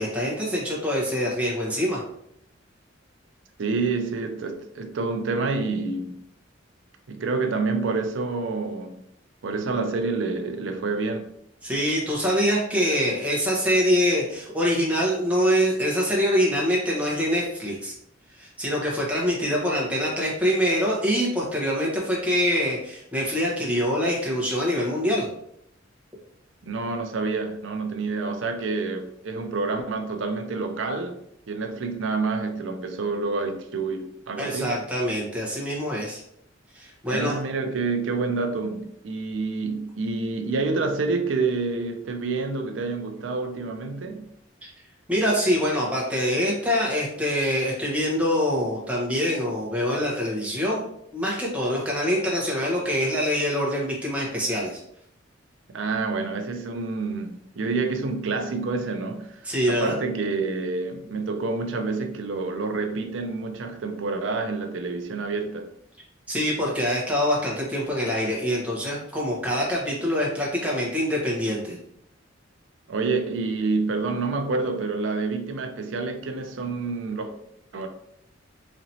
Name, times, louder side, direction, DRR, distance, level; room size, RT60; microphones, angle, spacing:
voice 1, 0.0-2.0 11.6-17.9 18.4-25.2 34.4-36.2 36.7-37.3 45.1-50.8 51.1-54.8 59.4-60.0 66.3-71.8, equal, 5° right, 1.0 m, -24 dB
voice 2, 3.6-6.2 7.1-9.0 9.4-11.3 26.6-31.2 31.5-34.8 37.1-44.3 55.7-65.7 72.9-77.3 77.7-77.9, right 3 dB, 75° right, 0.5 m, -28 dB
4.2 x 2.9 x 2.8 m
head